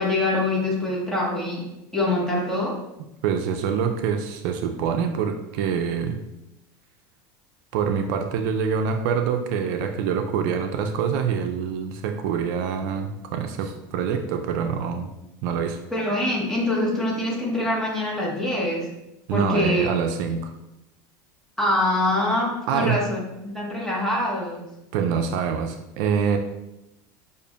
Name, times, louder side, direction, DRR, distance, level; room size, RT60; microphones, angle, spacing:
voice 1, 0.0-1.6 1.9-2.7 15.9-18.9 19.3-19.9 21.6-24.6, left 1 dB, 5° left, -4 dB, 1.3 m, -24 dB
voice 2, 3.2-6.2 7.7-15.1 15.4-15.8 19.3-20.5 22.7-23.0 24.9-26.4, right 7 dB, 70° right, 6 dB, 0.4 m, -25 dB
6.6 x 2.5 x 2.4 m, 0.91 s
supercardioid pair, 115°, 11 cm